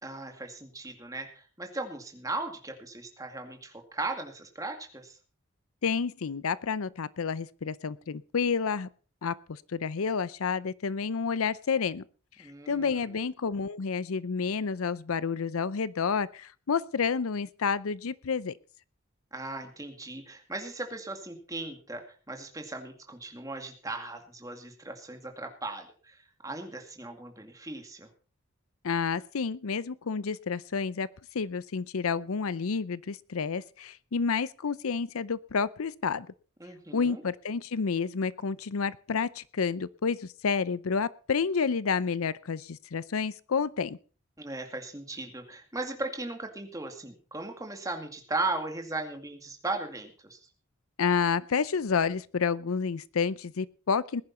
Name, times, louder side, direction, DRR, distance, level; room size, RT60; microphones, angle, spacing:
voice 1, 0.0-5.2 12.4-13.2 19.3-28.1 36.6-37.2 44.4-50.4, right 2 dB, 15° right, 4 dB, 2.2 m, -37 dB
voice 2, 5.8-8.9 9.2-12.0 12.7-18.5 28.8-31.1 31.3-36.3 36.9-44.0 51.0-54.2, left 5 dB, 80° left, 19 dB, 0.6 m, -30 dB
20.0 x 10.5 x 4.3 m, 0.39 s
head